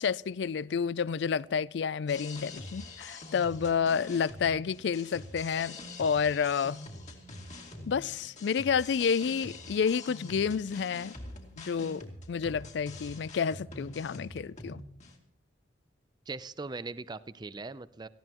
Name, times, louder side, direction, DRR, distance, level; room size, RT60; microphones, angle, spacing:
voice 1, 0.0-6.8 7.9-11.1 11.6-14.8, left 6 dB, 65° left, 0.4 m, -30 dB
sound 1, 2.1-15.2, left 2 dB, 40° left, 2.3 m, -45 dB
voice 2, 16.3-18.1, right 3 dB, 25° right, 0.4 m, -40 dB
18.5 x 15.0 x 3.0 m
head